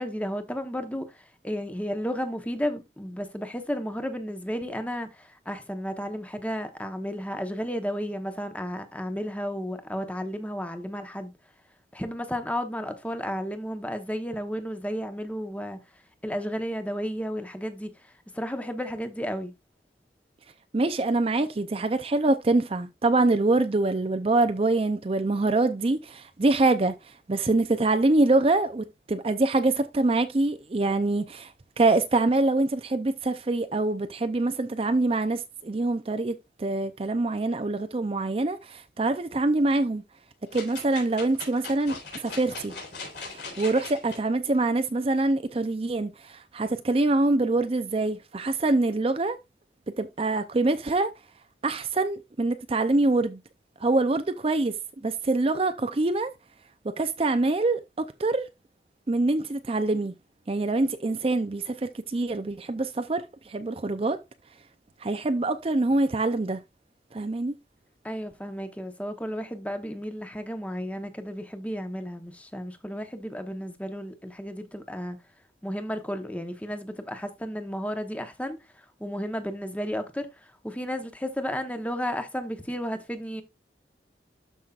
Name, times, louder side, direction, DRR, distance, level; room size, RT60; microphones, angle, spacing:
voice 1, 0.0-11.3 11.9-15.8 16.2-17.9 18.3-19.5 68.0-75.2 75.6-78.6 79.0-83.4, equal, 10° left, 0.9 m, -33 dB
voice 2, 20.7-40.0 40.5-42.7 43.3-49.4 50.0-51.1 51.6-53.4 53.8-54.8 55.0-56.3 56.8-58.5 59.1-60.1 60.5-64.2 65.0-66.6 67.1-67.5, right 2 dB, 30° right, 0.5 m, -25 dB
sound 1, 40.5-44.2 44.7-44.8, left 4 dB, 70° left, 3.8 m, -40 dB
12.5 x 5.6 x 2.4 m
head